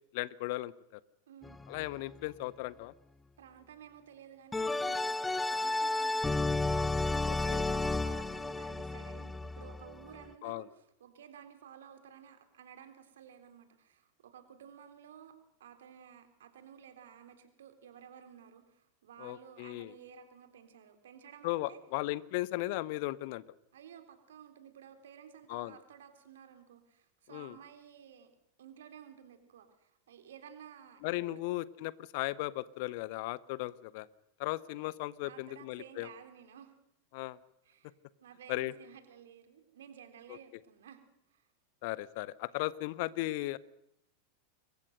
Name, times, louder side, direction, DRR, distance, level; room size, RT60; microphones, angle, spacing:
voice 1, 0.1-1.0 1.7-2.9 7.3-7.6 10.4-10.6 19.2-19.9 21.4-23.4 25.5-25.8 27.3-27.6 31.0-34.1 34.4-36.1 37.1-37.4 38.5-38.7 40.3-40.4 41.8-43.6, left 18 dB, 50° left, 19 dB, 1.0 m, -36 dB
voice 2, 1.3-1.6 3.4-21.8 23.7-28.3 28.6-31.0 31.3-31.4 35.2-36.7 37.6-37.9 38.2-41.0 41.3-41.5, right 8 dB, 60° right, 7 dB, 3.6 m, -54 dB
sound 1, 1.4-1.9 4.5-10.3, left 2 dB, 10° left, 0.8 m, -32 dB
27.5 x 22.5 x 6.6 m, 0.77 s
figure-of-eight pair, 90°, 0 cm